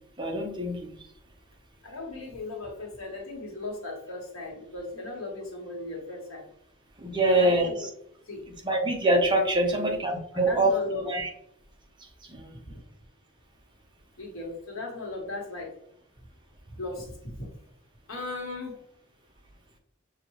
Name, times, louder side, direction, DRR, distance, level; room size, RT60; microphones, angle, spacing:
voice 1, 0.2-1.0 7.0-7.7 8.6-10.7 11.0-11.3 12.3-12.5, right 1 dB, 25° right, 1 dB, 0.9 m, -24 dB
voice 2, 1.8-6.4 7.1-7.8 8.3-8.4 9.6-9.9 10.3-11.1 14.2-15.7 16.7-17.5 18.1-18.8, left 2 dB, 80° left, -1 dB, 1.5 m, -37 dB
6.8 x 2.5 x 3.1 m, 0.72 s
head